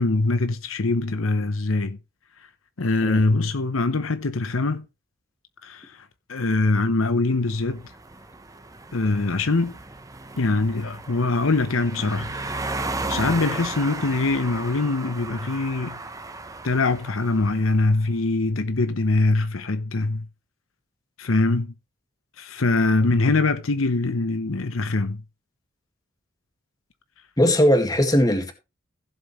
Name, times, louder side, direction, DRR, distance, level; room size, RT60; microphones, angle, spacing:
voice 1, 0.0-2.0 2.8-4.9 5.6-7.9 8.9-9.7 10.4-12.7 13.1-16.0 16.6-20.2 21.2-21.7 22.4-25.2, left 3 dB, 80° left, 0.9 m, -23 dB
sound 1, 7.6-17.9, right 2 dB, 15° right, 0.9 m, -35 dB
voice 2, 27.4-28.5, equal, 20° left, 2.0 m, -19 dB
15.5 x 7.6 x 3.2 m
head